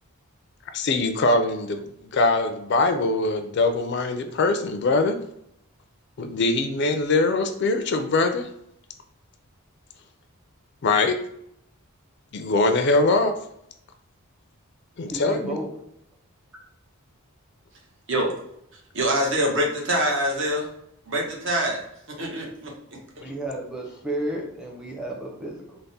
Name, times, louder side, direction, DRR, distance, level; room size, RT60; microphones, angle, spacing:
voice 1, 0.7-1.8 2.1-5.2 6.2-8.5 10.8-11.2 12.3-13.3 15.0-15.6, left 3 dB, 50° left, 7 dB, 0.3 m, -22 dB
voice 2, 15.1-15.7 23.2-25.8, right 1 dB, 5° right, -2 dB, 0.6 m, -32 dB
voice 3, 18.9-20.7 21.1-23.0, right 1 dB, 55° right, 0 dB, 0.8 m, -25 dB
3.4 x 2.1 x 4.0 m, 0.75 s
head